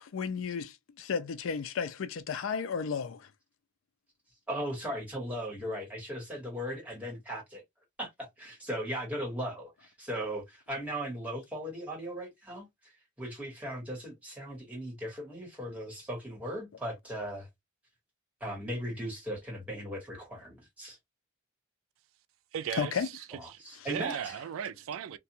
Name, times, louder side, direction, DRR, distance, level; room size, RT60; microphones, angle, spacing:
voice 1, 0.0-3.3 22.8-23.1, left 6 dB, 85° left, 0.4 m, -33 dB
voice 2, 4.5-7.6 8.0-12.9 13.2-17.5 18.4-21.0 23.3-24.1, equal, 5° right, 1.3 m, -38 dB
voice 3, 22.5-23.6 23.9-25.2, right 8 dB, 85° right, 0.3 m, -37 dB
2.5 x 2.2 x 2.8 m
head